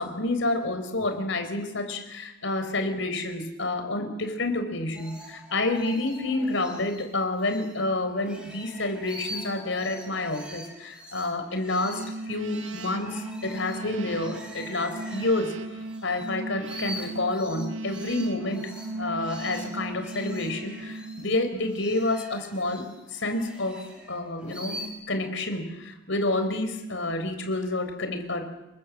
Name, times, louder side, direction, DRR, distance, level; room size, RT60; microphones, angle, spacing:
voice 1, 0.0-15.5 16.0-18.7 19.0-28.5, left 2 dB, 65° left, 8 dB, 4.4 m, -29 dB
sound 1, 4.9-7.8 8.1-16.3 16.6-24.9, equal, 5° right, 5.1 m, -44 dB
sound 2, 11.8-21.7, right 2 dB, 70° right, 1.8 m, -38 dB
28.0 x 24.0 x 7.5 m, 0.91 s
head